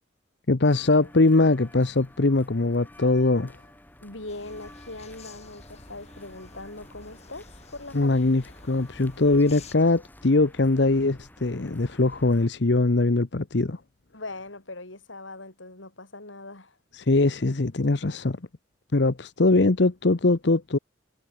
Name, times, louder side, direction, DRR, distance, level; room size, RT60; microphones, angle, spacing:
voice 1, 0.5-3.6 7.9-13.8 16.9-18.4 18.9-20.8, left 2 dB, 65° left, 0.9 m, -22 dB
sound 1, 0.6-12.5, left 1 dB, 10° left, 3.0 m, -51 dB
voice 2, 4.0-8.2 14.1-16.8, left 2 dB, 90° left, 5.2 m, -41 dB
sound 2, 4.3-9.7, left 3 dB, 35° left, 5.4 m, -49 dB
head